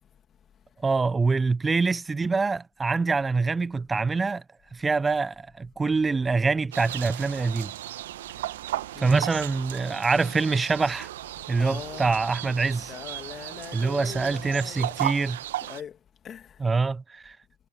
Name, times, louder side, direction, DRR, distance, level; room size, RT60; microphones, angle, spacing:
voice 1, 0.8-4.4 4.7-7.7 9.0-11.1 11.5-12.9 13.7-15.4 16.6-17.4, right 4 dB, 10° right, 0.4 m, -25 dB
Bass guitar, 6.7-15.3, right 26 dB, 50° right, 4.9 m, -54 dB
sound 1, 6.7-15.8, right 14 dB, 65° right, 0.9 m, -35 dB
voice 2, 8.6-9.3 11.6-12.2 12.9-15.2 15.6-16.7, left 8 dB, 25° left, 2.4 m, -42 dB
hypercardioid pair, 120°, 0 cm